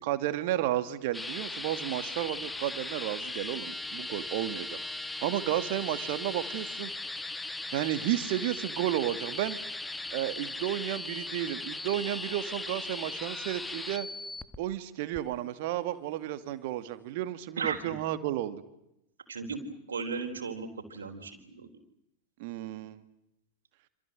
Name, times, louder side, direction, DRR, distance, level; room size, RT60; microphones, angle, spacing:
voice 1, 0.0-6.9 7.7-9.6 10.1-14.1 14.6-18.6 22.4-23.0, right 13 dB, 50° right, 12 dB, 2.3 m, -32 dB
sound 1, 1.1-14.6 15.1-15.2, left 2 dB, 5° left, 1.5 m, -38 dB
voice 2, 17.6-18.0 19.3-19.6 19.9-21.7, right 5 dB, 70° right, 4 dB, 4.0 m, -36 dB
28.0 x 27.5 x 7.7 m, 0.83 s
figure-of-eight pair, 90°, 0 cm